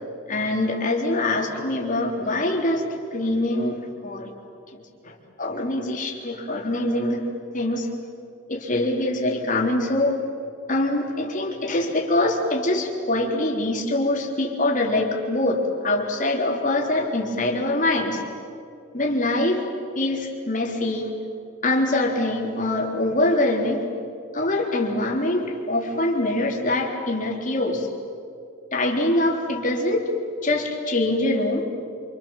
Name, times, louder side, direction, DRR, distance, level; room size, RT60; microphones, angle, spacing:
voice 1, 0.3-2.9 3.1-4.3 5.0-7.2 7.5-7.9 8.5-10.2 10.7-18.2 18.9-19.7 20.0-21.1 21.6-23.8 24.3-27.9 28.7-30.1 30.4-31.6, left 1 dB, 40° left, 0 dB, 3.7 m, -24 dB
28.0 x 27.0 x 7.4 m, 2.6 s
head